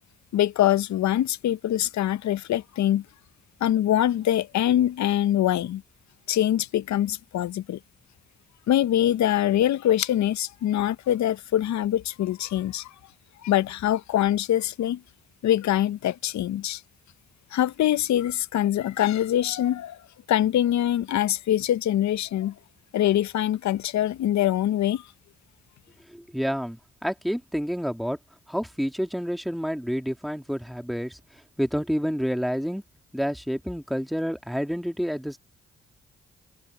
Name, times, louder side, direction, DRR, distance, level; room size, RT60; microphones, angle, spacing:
voice 1, 0.3-3.0 3.6-5.8 6.3-7.8 8.7-12.9 13.4-15.0 15.4-16.8 17.5-20.0 20.3-22.5 22.9-25.0, left 12 dB, 70° left, 1.0 m, -24 dB
voice 2, 26.1-28.2 28.5-31.2 31.6-32.8 33.1-35.4, equal, ahead, 2.9 m, -29 dB
hypercardioid pair, 40°, 29 cm